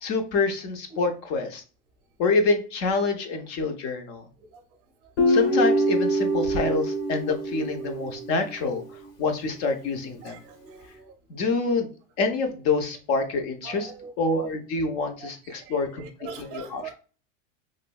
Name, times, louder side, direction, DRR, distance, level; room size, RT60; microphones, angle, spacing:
voice 1, 0.0-1.6 2.2-4.2 5.3-8.8 9.2-10.4 11.3-11.9 12.2-13.9 14.2-16.8, left 3 dB, 40° left, 6 dB, 0.6 m, -26 dB
Guitar, 5.2-8.5, right 1 dB, 55° left, 1.1 m, -24 dB
voice 2, 10.2-11.1 13.6-14.1 15.4-16.9, right 6 dB, 35° right, 4 dB, 0.6 m, -42 dB
3.1 x 2.7 x 2.2 m, 0.37 s
supercardioid pair, 150°, 39 cm